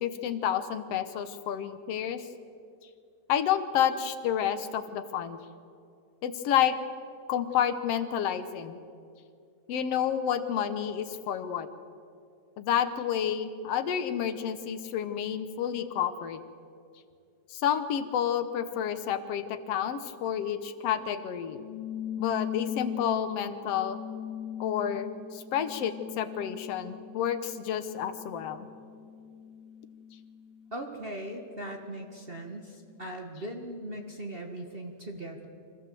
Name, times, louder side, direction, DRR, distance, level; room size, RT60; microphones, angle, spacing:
voice 1, 0.0-2.3 3.3-5.4 6.2-6.7 7.3-8.8 9.7-11.7 12.6-16.4 17.5-21.6 22.2-24.0 24.6-28.7, left 9 dB, 65° left, 9 dB, 1.8 m, -30 dB
sound 1, 21.4-32.3, left 9 dB, 15° right, 6.0 m, -40 dB
voice 2, 30.7-35.5, right 1 dB, 40° right, 2 dB, 0.8 m, -39 dB
25.0 x 15.0 x 7.7 m, 2.4 s
omnidirectional pair, 3.3 m